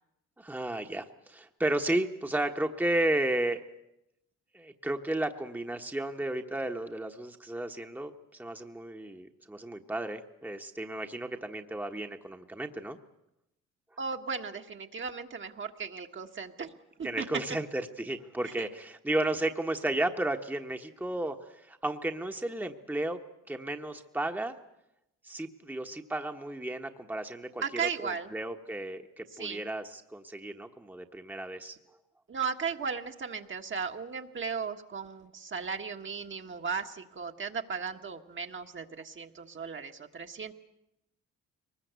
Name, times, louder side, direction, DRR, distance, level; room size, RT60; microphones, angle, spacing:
voice 1, 0.4-3.6 4.5-8.1 8.4-13.0 17.0-21.4 21.7-23.2 23.5-24.5 25.2-31.8, right 1 dB, 5° right, 5 dB, 1.3 m, -33 dB
voice 2, 14.0-16.7 17.0-17.3 18.6-18.7 27.6-28.3 29.3-29.7 32.3-40.5, right 5 dB, 40° right, 4 dB, 1.6 m, -36 dB
23.0 x 20.5 x 8.2 m, 0.85 s
cardioid pair, 90°, 30 cm